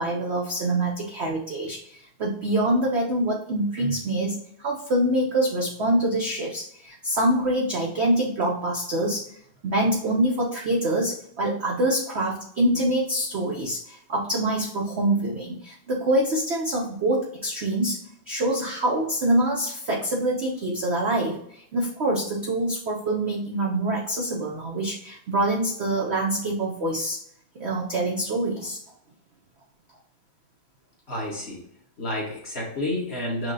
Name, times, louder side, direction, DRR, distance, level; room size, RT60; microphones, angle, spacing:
voice 1, 0.0-9.3 9.6-18.0 18.3-27.2 27.5-28.8, right 1 dB, 60° right, -1 dB, 0.7 m, -25 dB
voice 2, 31.1-31.6 32.0-33.5, left 1 dB, 40° left, -2 dB, 1.2 m, -30 dB
6.2 x 2.2 x 3.8 m, 0.69 s
omnidirectional pair, 2.0 m